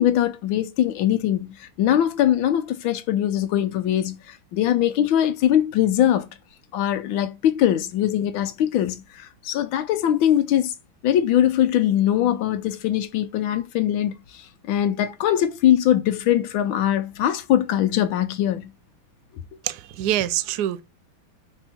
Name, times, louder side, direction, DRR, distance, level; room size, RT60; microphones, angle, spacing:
voice 1, 0.0-6.3 6.7-10.7 11.0-18.7, left 11 dB, 80° left, 1.5 m, -22 dB
voice 2, 19.7-20.8, right 12 dB, 70° right, 1.0 m, -25 dB
5.3 x 4.4 x 5.9 m
omnidirectional pair, 2.2 m